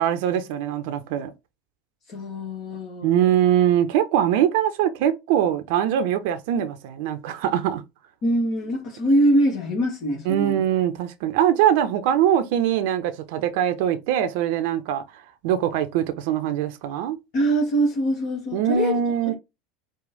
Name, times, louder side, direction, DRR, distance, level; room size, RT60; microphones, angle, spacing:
voice 1, 0.0-1.3 3.0-7.8 10.3-15.0 15.4-17.2 18.5-19.3, right 10 dB, 65° right, 0.7 m, -22 dB
voice 2, 2.1-3.3 8.2-10.6 17.3-19.0, right 1 dB, 55° left, 1.7 m, -23 dB
4.9 x 2.4 x 3.8 m
hypercardioid pair, 80°, 0 cm